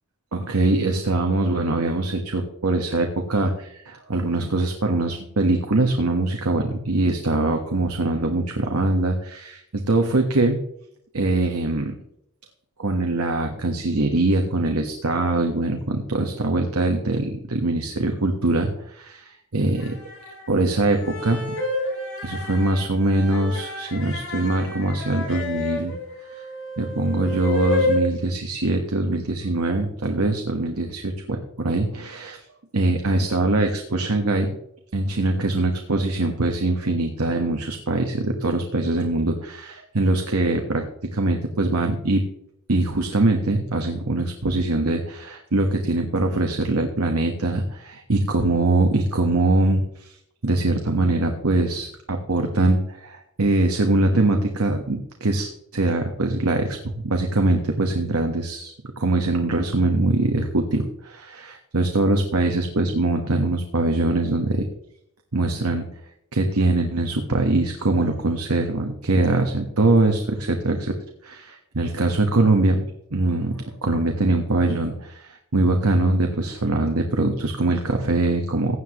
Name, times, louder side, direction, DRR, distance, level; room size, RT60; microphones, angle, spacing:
voice 1, 0.3-10.6 11.1-12.0 12.8-20.0 20.5-21.4 22.2-25.9 26.3-26.4 26.8-32.4 32.7-34.5 34.9-42.2 42.7-50.2 50.4-64.7 65.3-65.9 66.3-70.9 71.2-72.8 73.1-78.8, right 2 dB, 85° right, 4 dB, 1.3 m, -22 dB
sound 1, 19.8-20.4 21.0-28.0, left 3 dB, 80° left, 5.3 m, -29 dB
16.0 x 9.6 x 3.0 m, 0.73 s
head